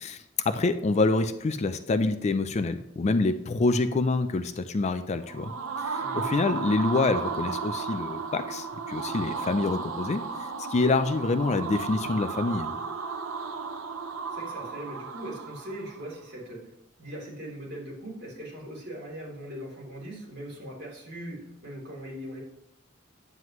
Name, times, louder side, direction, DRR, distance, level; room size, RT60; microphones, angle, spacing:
voice 1, 0.0-5.5 5.8-10.2 10.7-12.7, left 3 dB, 35° left, 10 dB, 0.4 m, -26 dB
sound 1, 5.2-16.1, right 5 dB, 85° right, 0.8 m, -34 dB
voice 2, 14.3-16.6 17.0-22.4, right 1 dB, 55° right, -5 dB, 3.2 m, -40 dB
9.3 x 7.7 x 3.1 m, 0.79 s
head